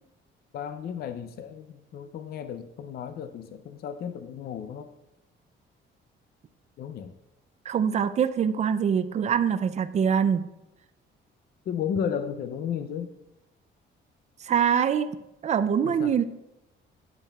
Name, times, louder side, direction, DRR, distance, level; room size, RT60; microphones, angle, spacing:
voice 1, 0.5-4.9 6.8-7.1 11.7-13.1 15.8-16.1, left 8 dB, 50° left, 10 dB, 0.4 m, -33 dB
voice 2, 7.7-10.4 14.4-15.1 15.4-16.2, right 7 dB, 35° right, 12 dB, 0.4 m, -24 dB
12.0 x 8.2 x 2.3 m, 0.93 s
cardioid pair, 150°, 21 cm